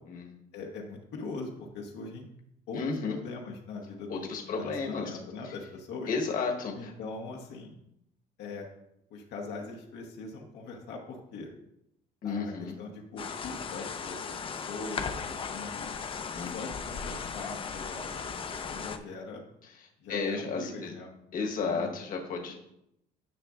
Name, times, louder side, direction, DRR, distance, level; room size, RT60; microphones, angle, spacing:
voice 1, 0.5-2.3 2.7-2.8 3.1-6.1 6.7-7.8 8.4-8.7 9.1-11.5 12.2-15.9 16.4-19.4 20.0-21.1 21.4-21.9, left 3 dB, 80° left, -1 dB, 1.1 m, -41 dB
voice 2, 2.8-3.2 4.1-5.1 6.1-6.9 12.2-12.7 16.3-16.5 20.1-20.9 21.3-22.5, left 4 dB, 55° left, 1 dB, 1.3 m, -32 dB
sound 1, 13.2-19.0, left 6 dB, 30° left, 0.5 m, -37 dB
9.8 x 5.9 x 2.5 m, 0.79 s
cardioid pair, 110°, 17 cm